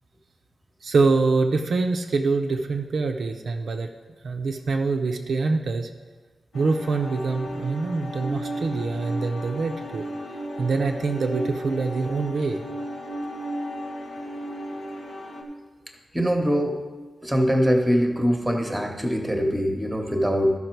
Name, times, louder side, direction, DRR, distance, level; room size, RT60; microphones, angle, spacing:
voice 1, 0.8-3.9 4.2-5.9 6.5-10.0 10.6-12.6, right 4 dB, 60° right, 3 dB, 0.5 m, -25 dB
sound 1, 6.5-15.4, equal, 85° left, 1.5 m, -34 dB
voice 2, 16.1-16.8 17.2-20.5, equal, 5° right, 3 dB, 1.0 m, -22 dB
12.5 x 5.7 x 4.5 m, 1.3 s
wide cardioid pair, 180°, 0 cm